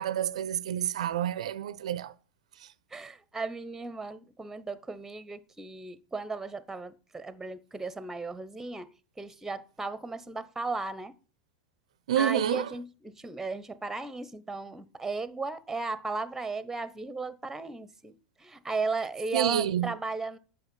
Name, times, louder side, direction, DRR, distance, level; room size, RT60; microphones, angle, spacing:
voice 1, 0.0-2.1 2.6-2.7 12.1-12.7 19.3-19.9, right 10 dB, 75° right, 0.5 m, -28 dB
voice 2, 2.9-8.9 9.2-11.1 12.2-18.1 18.4-20.4, right 3 dB, 10° right, 0.9 m, -35 dB
8.3 x 5.9 x 5.4 m
hypercardioid pair, 95°, 3 cm